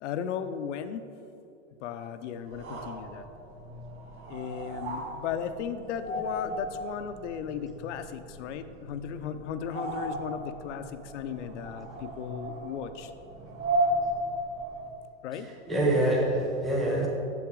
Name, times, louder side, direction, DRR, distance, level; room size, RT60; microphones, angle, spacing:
voice 1, 0.0-1.0 1.8-3.3 4.3-13.1 15.2-15.5, left 8 dB, 75° left, 10 dB, 0.6 m, -36 dB
sound 1, 2.4-15.0, right 1 dB, 35° right, 1.1 m, -35 dB
voice 2, 15.4-17.1, right 1 dB, ahead, -3 dB, 1.0 m, -26 dB
7.2 x 5.9 x 3.7 m, 2.7 s
hypercardioid pair, 120°, 36 cm